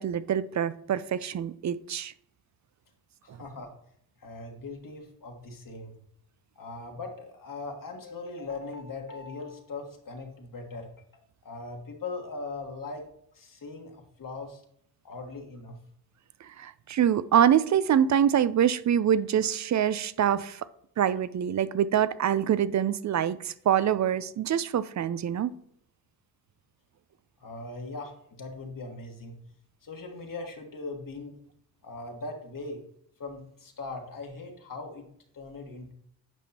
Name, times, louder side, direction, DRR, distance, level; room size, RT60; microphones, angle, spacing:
voice 1, 0.0-2.1 3.3-3.4 16.6-20.6 21.0-25.5, right 9 dB, 40° right, 0.5 m, -25 dB
voice 2, 3.2-3.7 4.2-6.0 6.5-13.1 13.3-14.6 15.0-15.8 27.4-29.4 29.8-31.3 31.8-32.8 33.2-35.1 35.3-35.9, left 3 dB, 45° left, 1.6 m, -40 dB
9.2 x 5.1 x 2.8 m
supercardioid pair, 45°, 45 cm